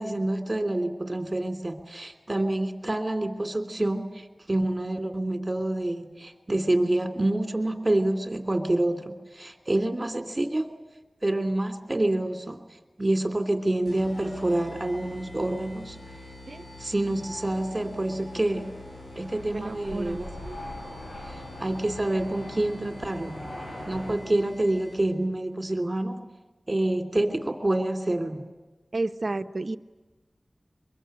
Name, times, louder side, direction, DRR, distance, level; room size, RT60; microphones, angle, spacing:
voice 1, 0.0-10.7 11.2-12.6 13.0-16.0 16.8-18.6 19.1-20.5 21.3-23.4 23.9-26.2 26.7-28.4, right 1 dB, 35° right, 6 dB, 3.1 m, -27 dB
sound 1, 13.9-25.2, left 1 dB, 90° left, 5.5 m, -46 dB
sound 2, 14.9-24.1, left 1 dB, 75° left, 7.8 m, -43 dB
voice 2, 19.5-20.2 28.9-29.8, right 2 dB, 65° right, 10 dB, 1.0 m, -31 dB
23.5 x 23.0 x 9.2 m, 1.2 s
wide cardioid pair, 50°, 0 cm